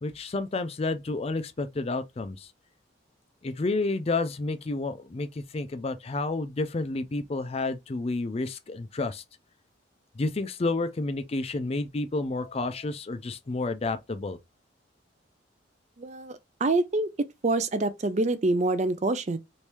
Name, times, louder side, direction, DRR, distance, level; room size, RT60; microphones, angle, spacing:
voice 1, 0.0-2.5 3.4-9.2 10.2-14.4, left 3 dB, 30° left, 0.4 m, -30 dB
voice 2, 16.0-17.1 17.4-19.4, right 2 dB, 35° right, 0.4 m, -26 dB
3.0 x 2.7 x 3.3 m
head